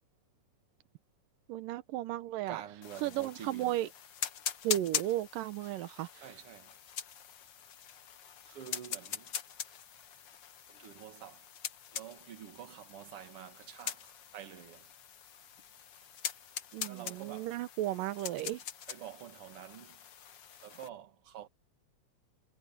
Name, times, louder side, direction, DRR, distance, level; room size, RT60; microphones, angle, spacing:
voice 1, 1.5-2.6 3.0-3.9 4.6-6.3 16.7-18.6, right 14 dB, 85° right, 2.6 m, -34 dB
voice 2, 2.5-3.8 6.2-6.8 8.5-9.3 10.7-11.4 11.9-14.9 16.9-17.6 18.9-20.0 20.6-21.5, right 10 dB, 50° right, 2.2 m, -48 dB
sound 1, 2.8-20.9, left 8 dB, 70° left, 1.1 m, -43 dB
omnidirectional pair, 3.9 m